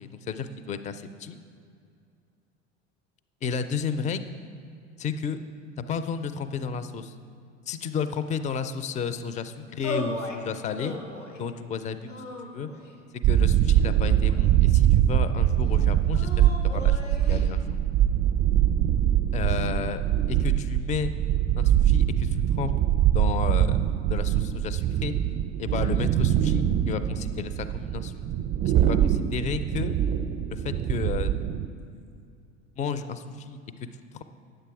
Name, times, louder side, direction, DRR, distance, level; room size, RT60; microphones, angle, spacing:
voice 1, 0.0-1.4 3.4-4.3 5.0-5.4 5.9-7.1 7.7-11.0 11.4-12.7 13.2-17.8 19.3-20.0 20.3-21.1 21.6-22.7 23.1-23.8 24.1-25.2 25.6-28.1 28.6-29.9 30.5-31.4 31.9-32.1 32.8-33.6, left 6 dB, 20° left, 11 dB, 0.5 m, -32 dB
sound 1, 9.8-10.4 10.8-11.5 12.1-13.0 13.7-14.7 16.1-17.5, left 3 dB, 90° left, 1.4 m, -37 dB
sound 2, 13.2-31.7, right 11 dB, 40° right, 0.6 m, -23 dB
9.9 x 7.8 x 4.7 m, 2.4 s
hypercardioid pair, 75°, 36 cm